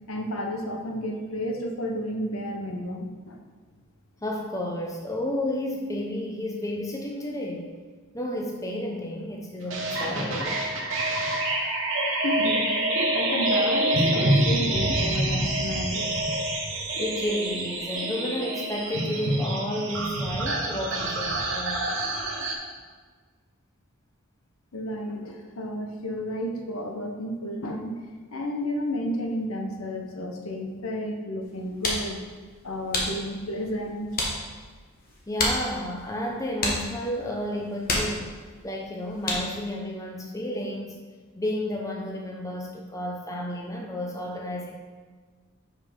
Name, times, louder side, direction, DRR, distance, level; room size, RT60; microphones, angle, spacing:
voice 1, 0.1-3.4 12.2-12.7 13.1-16.0 24.7-28.0 28.3-32.2 32.6-34.1, equal, 75° left, 3 dB, 0.9 m, -31 dB
voice 2, 4.2-7.7 8.1-10.6 17.0-22.0 35.3-38.3 38.6-41.0 41.4-44.8, left 1 dB, 15° left, 0 dB, 0.7 m, -31 dB
sound 1, 9.7-22.5, right 1 dB, 60° right, 1.2 m, -26 dB
sound 2, 31.4-39.7, left 2 dB, 40° left, 1.3 m, -32 dB
5.7 x 5.3 x 5.3 m, 1.5 s
head